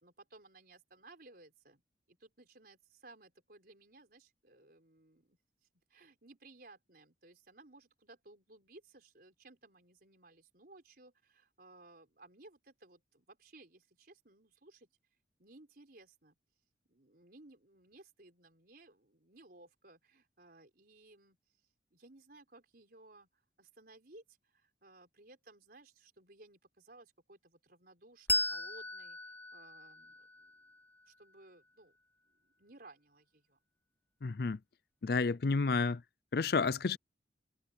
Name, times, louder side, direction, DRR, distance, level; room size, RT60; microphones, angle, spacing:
voice 1, 0.0-1.8 2.1-5.4 5.9-14.9 15.4-16.4 16.9-21.4 21.9-30.7 31.1-32.0 32.3-33.6, right 2 dB, 55° right, 4.7 m, -59 dB
Bell, 28.3-31.4, left 1 dB, 10° left, 0.5 m, -37 dB
voice 2, 34.2-34.6 35.0-36.0 36.3-37.0, left 4 dB, 60° left, 0.5 m, -30 dB
head